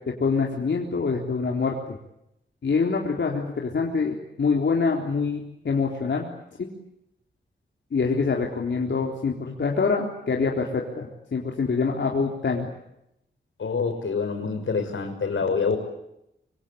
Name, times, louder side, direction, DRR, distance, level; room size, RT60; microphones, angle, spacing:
voice 1, 0.2-2.0 2.6-6.3 6.6-6.7 7.9-12.7, left 4 dB, 65° left, 0 dB, 3.9 m, -25 dB
voice 2, 13.6-15.8, left 5 dB, 85° left, 6 dB, 6.2 m, -26 dB
26.0 x 25.5 x 8.7 m, 0.82 s
wide cardioid pair, 145°, 20 cm